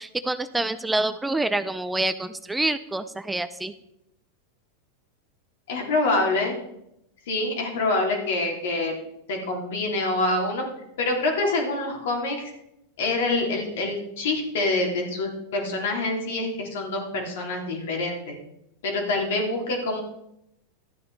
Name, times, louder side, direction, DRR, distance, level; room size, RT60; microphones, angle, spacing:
voice 1, 0.0-3.7, right 2 dB, 10° right, 11 dB, 0.5 m, -27 dB
voice 2, 5.7-6.5 7.3-8.9 9.3-10.6 11.0-12.5 13.0-18.3 18.8-20.0, left 2 dB, 75° left, 1 dB, 3.2 m, -26 dB
12.5 x 8.5 x 4.1 m, 0.83 s
hypercardioid pair, 110°, 0 cm